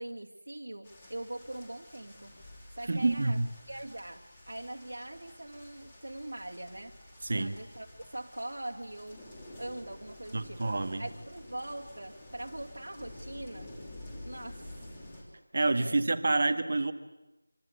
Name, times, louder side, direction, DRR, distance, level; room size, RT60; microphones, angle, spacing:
voice 1, 0.0-2.4 2.7-3.4 3.7-7.0 7.4-9.2 9.6-10.6 11.0-13.7 14.2-14.8 15.6-16.0, right 1 dB, 85° right, -4 dB, 2.7 m, -42 dB
sound 1, 0.8-15.2, left 1 dB, 10° left, 3.3 m, -50 dB
voice 2, 2.9-3.5 7.2-7.5 10.3-11.0 15.5-16.9, right 2 dB, 35° right, 9 dB, 1.6 m, -28 dB
27.0 x 25.0 x 8.5 m, 1.0 s
figure-of-eight pair, 180°, 0 cm